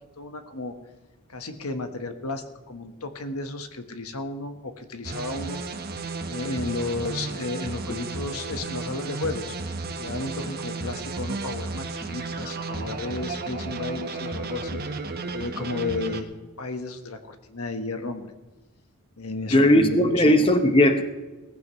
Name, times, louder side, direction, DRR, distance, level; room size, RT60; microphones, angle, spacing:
voice 1, 0.2-0.7 1.3-5.6 6.3-9.6 10.0-14.8 15.3-18.3 19.2-20.3, left 3 dB, 75° left, 7 dB, 1.4 m, -33 dB
sound 1, 5.0-16.2, right 3 dB, 45° right, 1.3 m, -33 dB
voice 2, 19.5-21.0, left 1 dB, 25° left, 6 dB, 1.0 m, -18 dB
18.5 x 15.5 x 3.2 m, 1.2 s
head